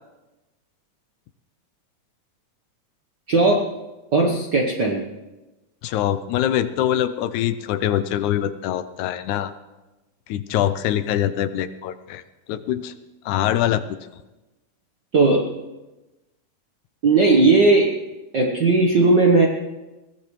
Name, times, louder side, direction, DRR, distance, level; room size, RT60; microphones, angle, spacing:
voice 1, 3.3-3.6 4.1-5.0 15.1-15.4 17.0-17.9 18.3-19.5, right 3 dB, 65° right, 1 dB, 1.1 m, -17 dB
voice 2, 5.8-9.5 10.3-12.2 12.5-12.9 13.3-13.8, left 11 dB, 80° left, 12 dB, 2.0 m, -23 dB
22.0 x 17.0 x 3.2 m, 1.1 s
omnidirectional pair, 3.6 m